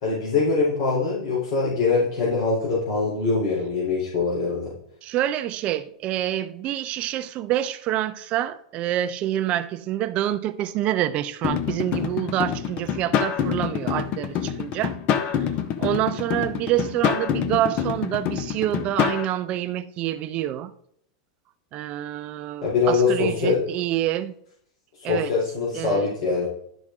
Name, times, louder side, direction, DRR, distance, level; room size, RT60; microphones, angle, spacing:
voice 1, 0.0-4.7 22.6-23.6 25.0-26.5, left 4 dB, 65° left, 3.5 m, -23 dB
voice 2, 5.0-14.9 15.3-15.4 15.8-20.7 21.7-24.3 25.0-25.3 25.7-26.1, right 13 dB, 40° right, 0.7 m, -27 dB
sound 1, 11.4-19.2, left 8 dB, 45° left, 0.9 m, -26 dB
12.0 x 5.1 x 3.7 m
supercardioid pair, 125°, 3 cm